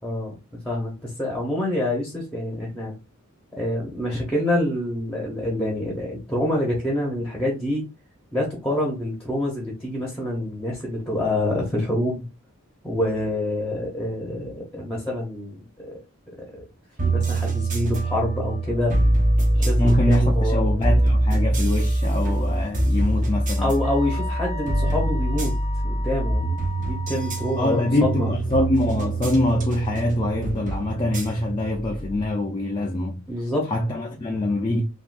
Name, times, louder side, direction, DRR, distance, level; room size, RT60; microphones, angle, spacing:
voice 1, 0.0-0.3 0.6-2.9 3.5-7.8 8.3-12.3 12.8-15.6 17.0-18.9 19.5-20.7 23.6-25.5 25.8-26.4 26.7-28.3 33.3-33.7, left 1 dB, 5° left, 0.8 m, -26 dB
sound 1, 17.0-32.2, right 1 dB, 35° right, 0.7 m, -24 dB
voice 2, 19.8-23.7 27.6-33.2 33.7-34.8, left 1 dB, 20° left, 0.3 m, -24 dB
Wind instrument woodwind instrument, 23.8-28.2, left 2 dB, 65° right, 0.8 m, -38 dB
3.5 x 2.3 x 2.5 m
head